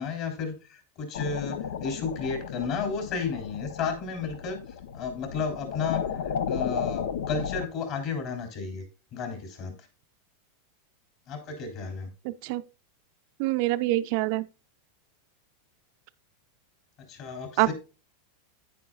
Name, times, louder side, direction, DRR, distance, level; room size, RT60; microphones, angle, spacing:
voice 1, 0.0-4.6 4.9-8.8 9.1-9.7 11.3-12.1 17.1-17.7, left 5 dB, 40° left, 3.6 m, -33 dB
sound 1, 1.1-7.7, left 7 dB, 80° left, 1.0 m, -34 dB
voice 2, 12.2-12.6 13.4-14.4 17.6-17.7, right 17 dB, 50° right, 0.5 m, -25 dB
9.8 x 9.4 x 2.4 m
supercardioid pair, 160°, 0 cm